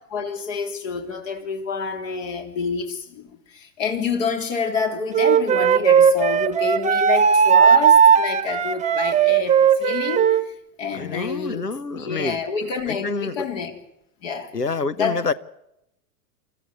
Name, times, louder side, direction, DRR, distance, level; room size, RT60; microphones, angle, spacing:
voice 1, 0.1-13.7 14.2-14.5 15.0-15.3, left 5 dB, 55° left, 3.6 m, -28 dB
Wind instrument woodwind instrument, 5.1-10.4, right 7 dB, 15° right, 1.2 m, -16 dB
voice 2, 10.9-12.4 12.9-13.4 14.5-15.3, left 4 dB, 90° left, 1.1 m, -27 dB
28.0 x 14.0 x 9.7 m
figure-of-eight pair, 95°, 46 cm